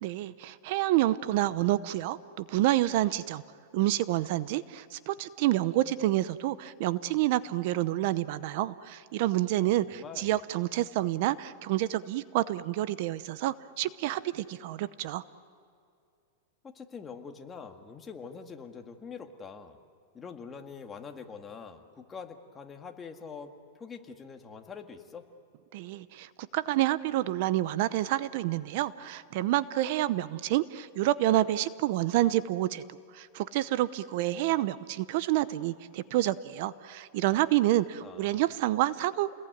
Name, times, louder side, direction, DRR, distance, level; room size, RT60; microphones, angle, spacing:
voice 1, 0.0-3.4 3.7-15.2 25.7-39.4, right 15 dB, 50° right, 16 dB, 0.7 m, -28 dB
voice 2, 9.9-10.3 16.6-19.8 20.1-23.5 23.8-25.3 38.0-38.4, left 5 dB, 15° left, 4 dB, 1.9 m, -44 dB
30.0 x 21.0 x 9.4 m, 2.5 s
supercardioid pair, 150°, 0 cm